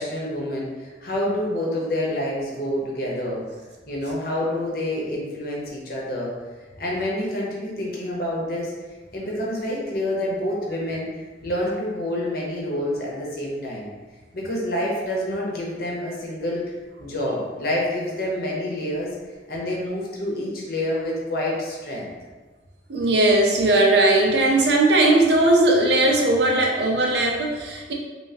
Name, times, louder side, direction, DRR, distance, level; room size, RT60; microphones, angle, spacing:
voice 1, 0.0-3.4 3.9-6.3 6.8-8.7 9.1-11.1 11.4-13.9 14.3-16.6 17.0-19.1 19.5-22.1, left 1 dB, 55° left, -3 dB, 0.8 m, -27 dB
voice 2, 22.9-27.9, right 2 dB, 70° right, 0 dB, 0.6 m, -18 dB
3.3 x 3.0 x 2.8 m, 1.3 s
head